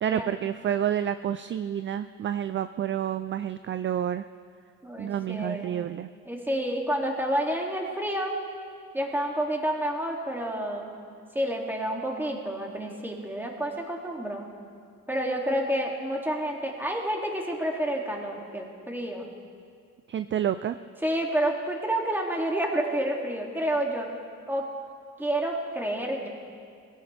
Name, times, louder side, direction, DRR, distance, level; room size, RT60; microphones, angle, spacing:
voice 1, 0.0-4.2 5.0-6.1 20.1-20.8, right 10 dB, 40° right, 11 dB, 0.4 m, -29 dB
voice 2, 4.8-5.8 6.2-8.3 8.9-10.9 11.3-14.5 15.1-19.3 21.0-24.1 24.5-24.7 25.2-26.3, right 1 dB, 5° right, -1 dB, 2.5 m, -29 dB
21.5 x 16.5 x 3.4 m, 2.2 s
cardioid pair, 90°, 30 cm